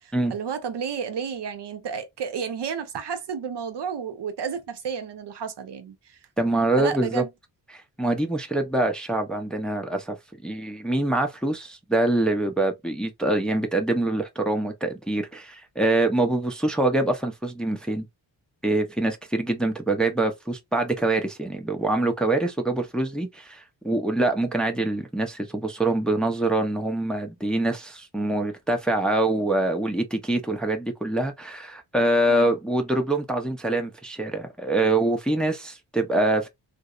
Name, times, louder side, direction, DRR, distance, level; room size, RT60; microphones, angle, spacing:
voice 1, 0.0-6.2 6.8-7.3 32.3-32.5, right 6 dB, 65° right, 0.7 m, -32 dB
voice 2, 6.4-7.2 7.7-10.2 10.4-18.0 18.6-36.5, right 2 dB, ahead, 0.5 m, -25 dB
2.7 x 2.0 x 2.3 m
cardioid pair, 70°, 45 cm